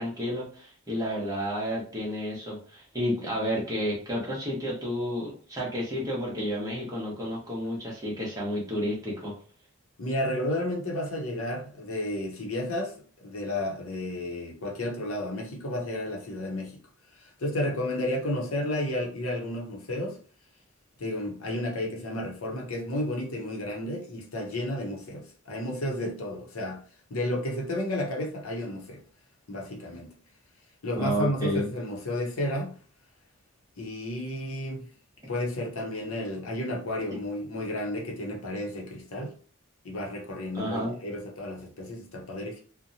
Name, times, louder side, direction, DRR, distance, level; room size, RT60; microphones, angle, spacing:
voice 1, 0.0-9.4 30.9-31.7 40.5-40.9, equal, 15° right, 0.8 m, -31 dB
voice 2, 10.0-12.9 13.2-16.8 17.1-20.2 21.0-26.8 27.1-29.0 29.5-30.1 30.8-32.8 33.8-34.8 35.3-39.3 39.8-42.6, left 1 dB, 80° left, 0.7 m, -32 dB
2.8 x 2.1 x 2.6 m
head